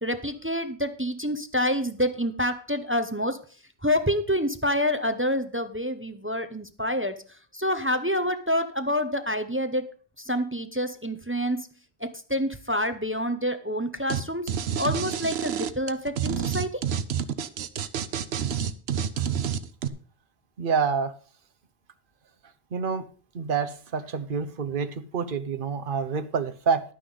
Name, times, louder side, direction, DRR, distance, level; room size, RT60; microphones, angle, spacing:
voice 1, 0.0-3.4 3.8-7.2 7.5-9.8 10.3-11.7 12.0-14.5 14.8-16.8, equal, 15° right, 9 dB, 0.6 m, -27 dB
sound 1, 14.1-14.2 14.5-19.9, right 8 dB, 85° right, 1.0 m, -28 dB
voice 2, 20.6-21.1 22.7-23.0 23.3-26.8, right 5 dB, 60° right, 11 dB, 1.0 m, -27 dB
11.0 x 9.4 x 4.0 m, 0.40 s
omnidirectional pair, 1.0 m